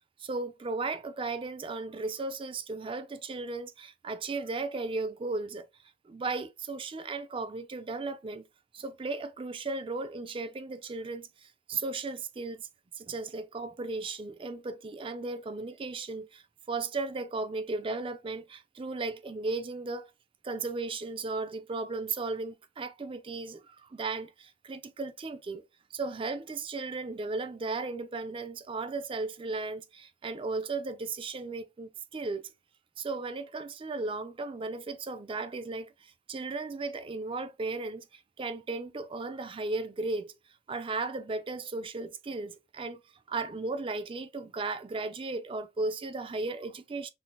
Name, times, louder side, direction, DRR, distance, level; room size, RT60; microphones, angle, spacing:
voice 1, 0.2-5.7 6.0-8.4 8.7-12.7 13.0-16.4 16.7-20.1 20.4-25.6 25.9-32.4 33.0-40.3 40.7-43.0 43.3-47.1, right 3 dB, 25° right, 0.4 m, -35 dB
5.9 x 2.7 x 2.2 m
head